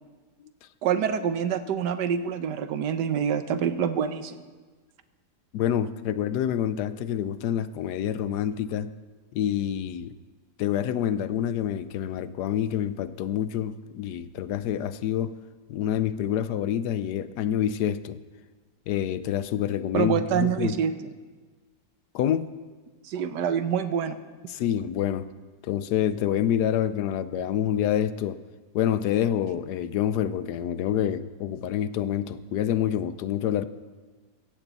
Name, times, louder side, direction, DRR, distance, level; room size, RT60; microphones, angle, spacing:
voice 1, 0.8-4.4 19.9-20.9 23.0-24.2, right 8 dB, 80° right, 11 dB, 1.4 m, -26 dB
voice 2, 5.5-8.9 9.3-10.2 10.6-15.4 15.7-18.2 18.9-20.8 22.1-22.6 24.5-25.3 25.6-28.4 28.7-33.7, left 10 dB, 80° left, 14 dB, 1.2 m, -27 dB
16.0 x 15.0 x 4.1 m, 1.3 s
omnidirectional pair, 1.8 m